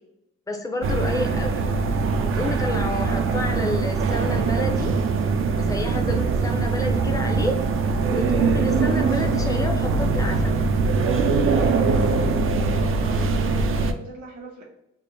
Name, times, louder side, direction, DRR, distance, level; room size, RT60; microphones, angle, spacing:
voice 1, 0.5-1.6 2.2-5.0 5.3-7.6 8.0-10.6, left 1 dB, 10° left, 3 dB, 0.6 m, -30 dB
sound 1, 0.8-13.9, right 4 dB, 45° right, 0.4 m, -22 dB
voice 2, 12.5-14.6, right 2 dB, 70° right, 0 dB, 1.2 m, -39 dB
3.5 x 2.1 x 4.0 m, 0.85 s
cardioid pair, 90°, 30 cm